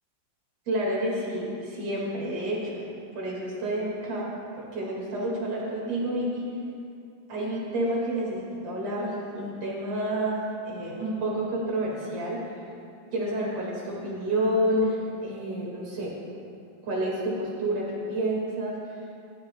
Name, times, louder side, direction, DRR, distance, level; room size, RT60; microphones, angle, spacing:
voice 1, 0.7-2.9 3.1-4.3 4.6-6.5 7.3-12.4 13.1-16.1 16.8-18.8, right 1 dB, 50° right, -4 dB, 2.6 m, -29 dB
16.5 x 12.0 x 2.2 m, 2.5 s
omnidirectional pair, 4.1 m